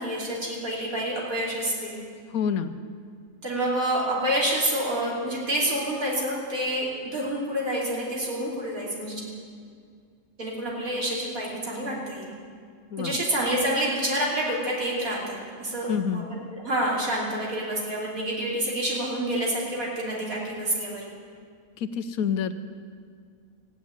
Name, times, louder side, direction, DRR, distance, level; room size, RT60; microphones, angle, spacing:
voice 1, 0.0-2.0 3.4-9.2 10.4-12.3 13.0-21.1, right 1 dB, 75° right, -4 dB, 3.4 m, -28 dB
voice 2, 2.3-2.7 12.9-13.2 15.9-16.3 21.8-22.5, left 7 dB, 80° left, 11 dB, 1.2 m, -27 dB
15.0 x 9.2 x 9.6 m, 2.1 s
omnidirectional pair, 1.5 m